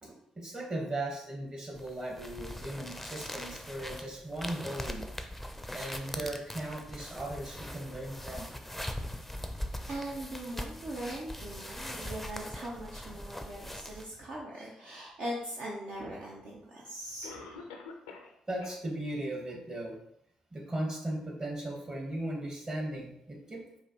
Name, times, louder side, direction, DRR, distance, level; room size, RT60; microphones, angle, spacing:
voice 1, 0.0-5.1 5.7-8.5 18.5-20.0 20.5-23.6, right 1 dB, 35° right, 0 dB, 1.4 m, -37 dB
sound 1, 1.8-14.1, left 1 dB, 5° left, 0.5 m, -41 dB
voice 2, 9.9-17.5, right 1 dB, 65° right, -4 dB, 0.6 m, -40 dB
Cough, 16.1-16.2 17.2-18.4 18.6-18.7 19.3-19.4 19.9-20.0, left 4 dB, 85° left, 0.4 m, -46 dB
4.9 x 2.6 x 2.9 m, 0.75 s
hypercardioid pair, 40°, 3 cm